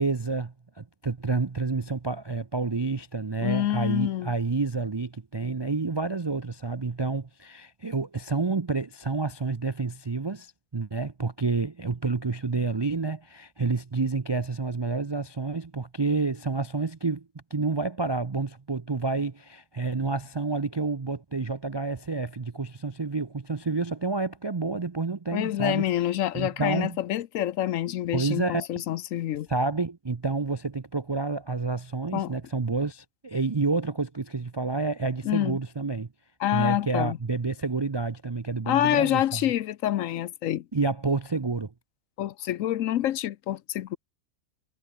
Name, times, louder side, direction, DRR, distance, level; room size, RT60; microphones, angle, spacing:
voice 1, 0.0-25.9 26.3-27.0 28.1-28.7 29.5-36.1 36.5-39.4 40.7-41.7, right 4 dB, 40° right, 0.3 m, -29 dB
voice 2, 3.4-4.3 25.3-29.5 32.1-32.3 35.2-35.6 36.4-37.2 38.7-40.6 42.2-44.0, left 12 dB, 70° left, 1.0 m, -27 dB
omnidirectional pair, 1.5 m